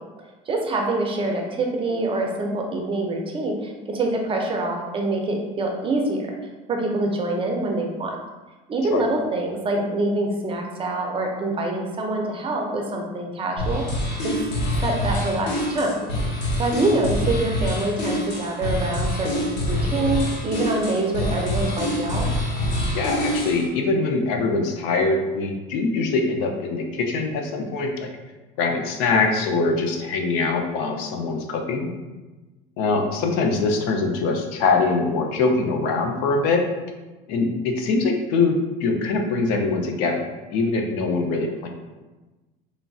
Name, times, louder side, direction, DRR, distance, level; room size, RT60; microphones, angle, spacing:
voice 1, 0.5-6.3 6.7-8.2 8.7-13.8 14.2-14.3 14.8-16.1 16.6-22.3, right 2 dB, 30° right, 1 dB, 0.5 m, -25 dB
sound 1, 13.6-23.7, left 1 dB, 65° left, 0.9 m, -26 dB
voice 2, 22.9-28.1 28.6-31.9 32.8-36.6 37.3-41.7, left 3 dB, 85° left, 3 dB, 0.5 m, -23 dB
3.1 x 2.5 x 2.3 m, 1.2 s
supercardioid pair, 110°, 19 cm